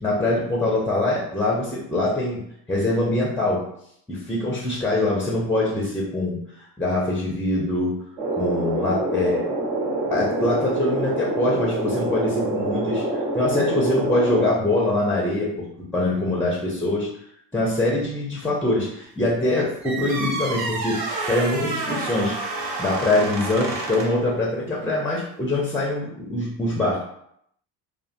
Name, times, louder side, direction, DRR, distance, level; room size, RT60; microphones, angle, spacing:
voice 1, 0.0-3.7 4.1-6.4 6.8-8.0 8.4-9.4 10.1-17.1 17.5-27.0, left 2 dB, 5° left, -3 dB, 0.3 m, -24 dB
sound 1, 8.2-14.5, right 2 dB, 80° right, 1.0 m, -26 dB
sound 2, 19.8-24.3, right 3 dB, 50° right, 0.7 m, -29 dB
2.4 x 2.2 x 2.4 m, 0.71 s
figure-of-eight pair, 50°, 50 cm